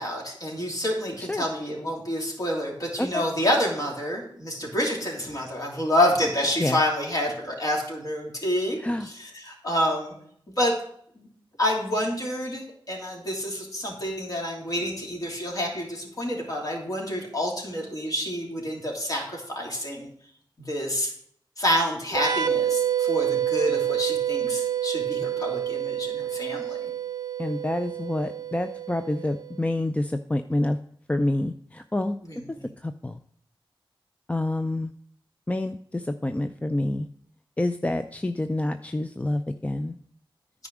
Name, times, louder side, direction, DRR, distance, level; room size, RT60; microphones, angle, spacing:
voice 1, 0.0-8.8 9.0-10.1 10.6-10.7 11.2-11.3 11.6-20.1 20.7-21.1 21.6-26.9 32.2-32.7, left 1 dB, 40° left, -1 dB, 2.8 m, -28 dB
sound 1, 22.1-29.6, right 10 dB, 50° right, 0.6 m, -28 dB
voice 2, 27.4-30.8 31.1-32.2 32.8-33.2 34.3-34.9 35.5-37.1 37.6-40.0, left 1 dB, 15° left, 9 dB, 0.4 m, -27 dB
9.6 x 5.0 x 6.0 m, 0.65 s
cardioid pair, 60°, 9 cm